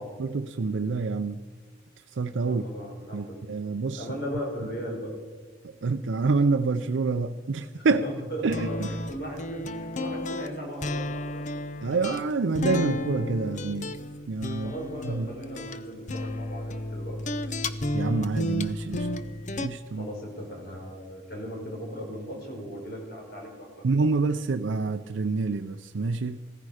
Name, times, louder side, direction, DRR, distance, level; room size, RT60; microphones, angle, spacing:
voice 1, 0.2-1.4 2.2-2.6 3.1-4.0 5.8-8.0 8.4-8.7 11.8-13.9 14.3-14.7 15.2-15.3 17.9-19.1 19.6-20.1 23.8-26.4, right 4 dB, 90° right, 0.5 m, -27 dB
voice 2, 2.4-3.4 3.9-5.1 7.7-11.5 14.6-17.2 19.9-23.7, equal, 60° left, 4.7 m, -37 dB
sound 1, 8.5-19.7, left 1 dB, 40° left, 0.7 m, -32 dB
16.0 x 14.5 x 4.9 m
head